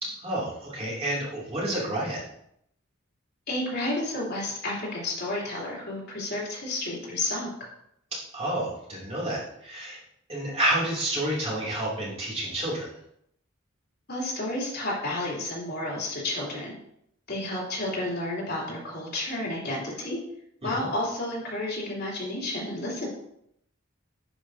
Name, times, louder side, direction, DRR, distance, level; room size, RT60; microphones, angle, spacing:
voice 1, 0.0-2.2 8.1-10.0 10.3-12.9 20.6-20.9, right 1 dB, 30° right, -5 dB, 2.7 m, -29 dB
voice 2, 3.5-7.5 14.1-16.7 17.3-20.2 20.6-23.1, left 1 dB, 50° left, -4 dB, 3.1 m, -31 dB
10.5 x 6.5 x 2.7 m, 0.74 s
head